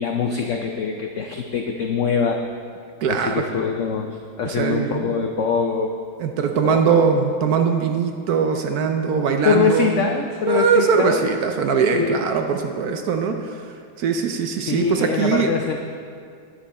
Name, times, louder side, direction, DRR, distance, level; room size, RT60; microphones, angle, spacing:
voice 1, 0.0-2.4 3.1-6.0 6.6-6.9 9.4-11.2 11.7-12.3 14.7-15.8, left 5 dB, 85° left, 3 dB, 0.6 m, -23 dB
voice 2, 3.0-3.4 4.4-5.1 6.2-9.9 10.5-15.5, right 5 dB, 65° right, 5 dB, 1.0 m, -21 dB
10.0 x 9.6 x 4.2 m, 2.2 s
omnidirectional pair, 2.0 m